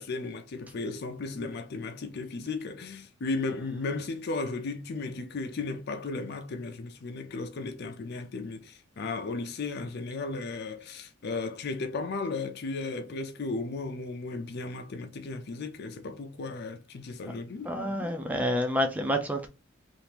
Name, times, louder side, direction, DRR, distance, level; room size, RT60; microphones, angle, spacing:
voice 1, 0.0-17.7, left 3 dB, 50° left, 0.4 m, -35 dB
voice 2, 17.6-19.5, equal, 10° right, 0.4 m, -28 dB
2.9 x 2.5 x 3.3 m
head